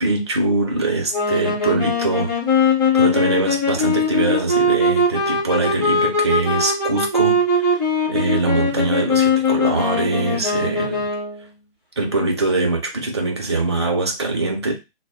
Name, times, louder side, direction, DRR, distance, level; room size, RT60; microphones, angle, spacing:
voice 1, 0.0-2.3 2.9-7.7 8.1-11.1 12.0-14.7, right 3 dB, 25° right, 2 dB, 0.4 m, -22 dB
sound 1, 1.1-11.4, left 3 dB, 20° left, 0.8 m, -20 dB
2.0 x 2.0 x 3.4 m, 0.24 s
figure-of-eight pair, 140°, 31 cm